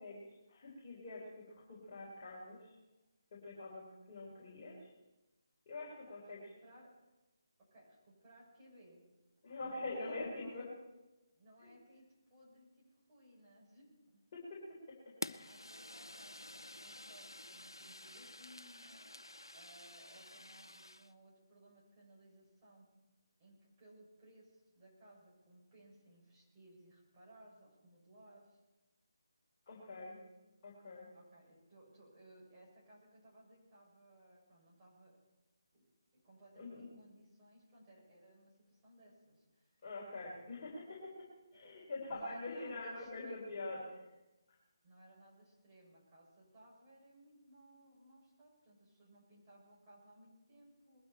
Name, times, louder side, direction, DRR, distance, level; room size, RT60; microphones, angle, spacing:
voice 1, 0.0-2.7 3.3-4.9 5.7-6.5 9.4-10.7 11.6-11.7 14.3-14.6 14.9-15.0 15.2-15.5 29.7-30.2 30.6-31.1 36.6-36.9 39.8-41.3 41.5-43.8, left 2 dB, 30° left, -6 dB, 4.1 m, -45 dB
voice 2, 6.0-6.9 7.6-9.0 9.6-10.7 11.3-14.2 15.4-22.9 23.4-28.6 31.1-35.2 35.7-35.8 36.2-39.8 40.2-40.6 41.5-43.6 44.8-51.0, right 1 dB, 20° right, -5 dB, 6.7 m, -62 dB
Fire, 15.2-21.1, left 1 dB, 80° left, 0.6 m, -49 dB
21.0 x 12.0 x 4.4 m, 1.1 s
figure-of-eight pair, 150°, 2 cm